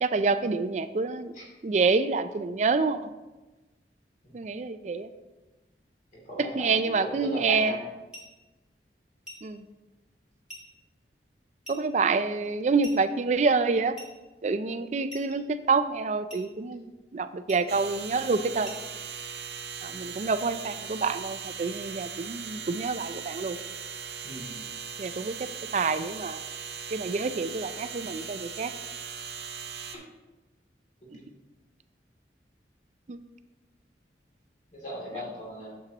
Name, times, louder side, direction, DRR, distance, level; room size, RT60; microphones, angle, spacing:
voice 1, 0.0-1.3 1.6-3.0 4.3-5.1 6.4-7.8 9.4-9.6 11.7-14.0 14.4-18.8 19.8-23.6 25.0-26.4 26.9-28.7 31.1-31.2 33.1-33.2, right 4 dB, 40° right, 12 dB, 0.3 m, -27 dB
voice 2, 6.1-7.8 24.2-24.6 31.0-31.3 34.7-35.7, equal, 45° left, -4 dB, 2.6 m, -38 dB
sound 1, 8.1-8.4 9.3-9.5 10.5-10.7 11.6-11.9 12.8-13.1 14.0-14.2 15.1-15.4 16.3-16.5 17.5-17.7 18.6-18.9, equal, 5° right, 1.7 m, -45 dB
sound 2, 17.7-30.0, right 7 dB, 70° right, 0.7 m, -39 dB
8.8 x 7.3 x 2.9 m, 1.1 s
head